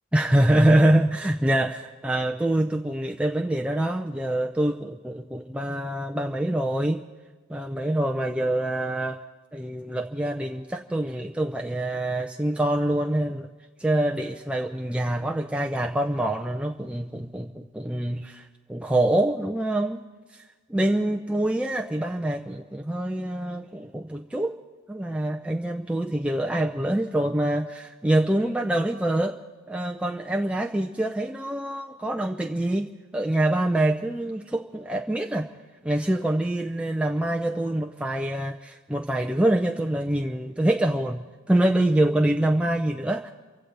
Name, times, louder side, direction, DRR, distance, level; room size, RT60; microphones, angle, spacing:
voice 1, 0.1-7.0 7.5-9.2 9.5-13.5 13.8-20.0 20.3-20.4 20.7-24.6 24.9-29.4 29.7-35.5 35.8-43.3, right 1 dB, 5° right, 1 dB, 0.5 m, -25 dB
27.5 x 16.0 x 3.3 m, 1.3 s
head